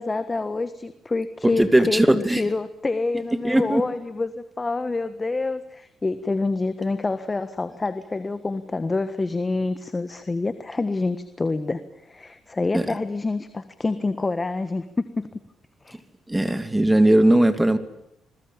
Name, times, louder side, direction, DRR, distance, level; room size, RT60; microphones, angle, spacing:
voice 1, 0.0-15.3 15.8-16.0, left 3 dB, 25° left, 12 dB, 1.6 m, -27 dB
voice 2, 1.6-2.4 3.4-3.8 12.7-12.9 16.3-17.8, right 1 dB, 10° right, 10 dB, 2.8 m, -18 dB
28.0 x 21.0 x 8.8 m, 0.80 s
cardioid pair, 90°, 0 cm